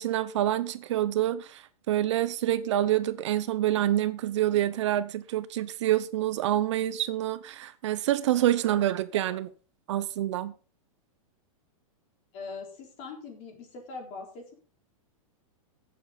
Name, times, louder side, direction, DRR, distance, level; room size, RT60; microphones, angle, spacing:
voice 1, 0.0-9.5 9.9-10.5, right 13 dB, 55° right, 0.7 m, -27 dB
voice 2, 12.3-14.5, left 4 dB, 35° left, 4.1 m, -41 dB
16.0 x 7.4 x 4.0 m
supercardioid pair, 160°, 18 cm